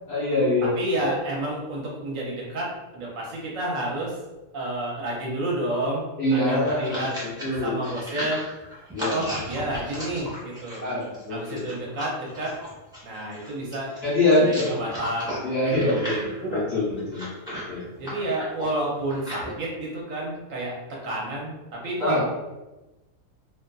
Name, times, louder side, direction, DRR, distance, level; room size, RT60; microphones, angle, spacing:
voice 1, 0.1-0.7 6.2-7.1 7.4-7.8 8.9-9.2 10.8-11.7 14.0-14.8 15.4-17.8 22.0-22.2, left 1 dB, 55° left, -7 dB, 0.8 m, -24 dB
voice 2, 0.6-4.2 4.5-7.2 7.6-8.5 9.1-10.9 11.3-12.6 13.0-14.0 14.5-16.2 18.0-22.2, right 1 dB, 65° right, -3 dB, 1.0 m, -30 dB
sound 1, 6.4-19.5, equal, 5° right, 0.5 m, -36 dB
2.6 x 2.4 x 2.2 m, 1.1 s
omnidirectional pair, 1.6 m